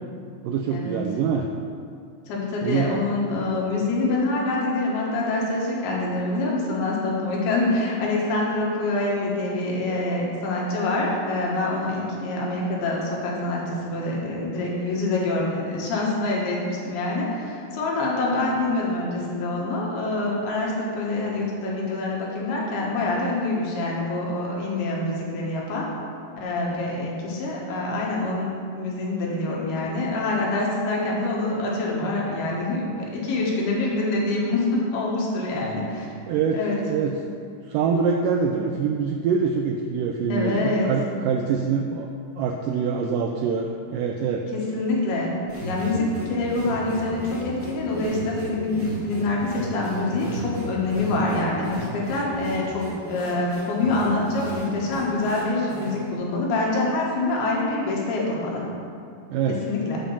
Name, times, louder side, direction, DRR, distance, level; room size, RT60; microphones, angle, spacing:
voice 1, 0.4-1.5 2.6-2.9 36.3-37.2 37.5-42.1 42.4-44.5 45.7-45.8 59.3-59.6, right 6 dB, 85° right, 3 dB, 1.9 m, -25 dB
voice 2, 2.3-25.9 26.4-36.1 36.5-36.8 40.3-40.9 44.5-45.3 45.7-58.6 59.5-60.0, left 2 dB, 80° left, -3 dB, 3.5 m, -26 dB
sound 1, 45.5-56.1, equal, 5° right, 1.1 m, -35 dB
8.8 x 5.2 x 7.1 m, 2.5 s
omnidirectional pair, 4.4 m